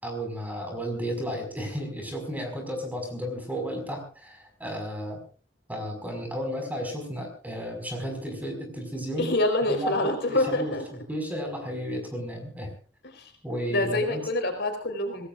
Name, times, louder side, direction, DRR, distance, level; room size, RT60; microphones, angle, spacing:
voice 1, 0.0-5.2 5.7-9.3 9.6-12.7 13.4-14.2, equal, 10° right, 3 dB, 5.5 m, -33 dB
voice 2, 9.2-10.8 13.0-13.3 13.7-15.3, left 2 dB, 65° left, 4 dB, 4.3 m, -26 dB
25.5 x 18.5 x 2.5 m, 0.40 s
head